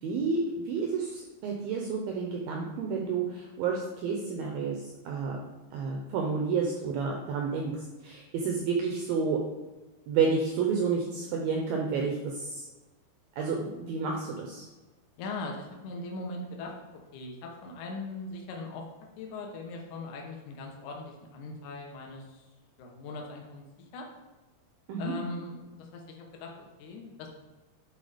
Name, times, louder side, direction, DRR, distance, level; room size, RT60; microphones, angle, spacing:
voice 1, 0.0-5.4 5.7-9.4 10.1-12.7 13.4-14.7 24.9-25.1, right 5 dB, 90° right, 0 dB, 2.0 m, -30 dB
voice 2, 15.2-18.8 19.2-22.5 22.8-24.1 25.0-27.3, left 3 dB, 85° left, 1 dB, 1.7 m, -40 dB
10.5 x 4.2 x 5.0 m, 1.2 s
omnidirectional pair, 5.3 m